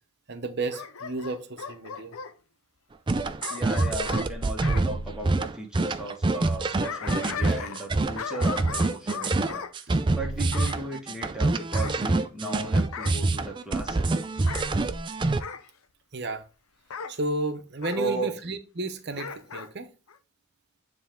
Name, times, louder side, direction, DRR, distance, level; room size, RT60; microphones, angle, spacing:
voice 1, 0.3-2.2 16.1-16.4 17.1-19.9, right 2 dB, 50° right, 0.8 m, -32 dB
Bark / Growling, 0.7-2.3 3.4-4.9 6.5-7.9 8.1-9.7 10.5-10.8 11.7-12.5 12.9-13.3 14.4-14.7 15.4-15.7 16.9-17.2 17.8-18.0 19.1-19.7 20.1-20.2, left 6 dB, 85° left, 0.6 m, -37 dB
sound 1, 3.1-15.4, right 2 dB, 20° right, 0.3 m, -26 dB
voice 2, 3.5-14.2 17.9-18.3, right 2 dB, 5° right, 1.2 m, -36 dB
9.3 x 3.4 x 3.7 m
head